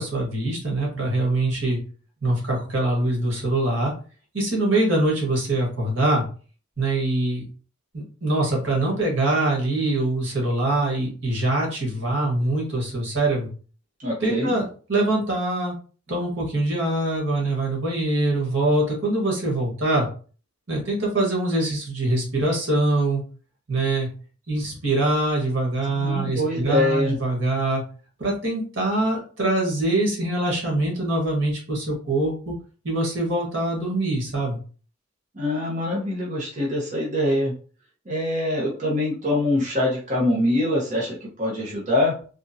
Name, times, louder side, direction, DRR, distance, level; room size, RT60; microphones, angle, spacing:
voice 1, 0.0-1.8 2.2-3.9 4.3-6.2 6.8-7.4 7.9-13.5 14.2-15.7 16.1-20.1 20.7-23.2 23.7-24.1 24.5-27.8 28.2-32.5 32.8-34.6, right 2 dB, 85° right, -2 dB, 1.6 m, -23 dB
voice 2, 14.0-14.5 25.9-27.2 35.3-37.5 38.1-42.2, left 1 dB, 40° right, -4 dB, 0.9 m, -24 dB
3.5 x 2.5 x 2.7 m, 0.40 s
head